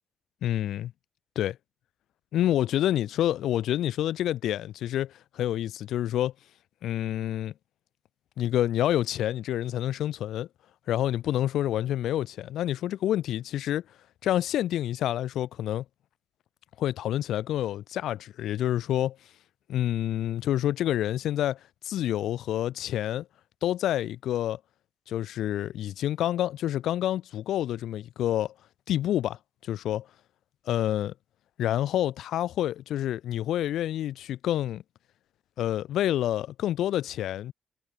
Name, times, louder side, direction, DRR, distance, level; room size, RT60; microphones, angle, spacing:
voice 1, 0.4-0.9 1.4-1.6 2.3-6.3 6.8-7.5 8.4-10.5 10.9-13.8 14.2-15.8 16.8-19.2 19.7-21.6 21.8-23.3 23.6-24.6 25.1-28.5 28.9-30.1 30.7-31.1 31.6-34.8 35.6-37.5, left 12 dB, 80° left, 1.9 m, -28 dB
cardioid pair, 90°, 0 cm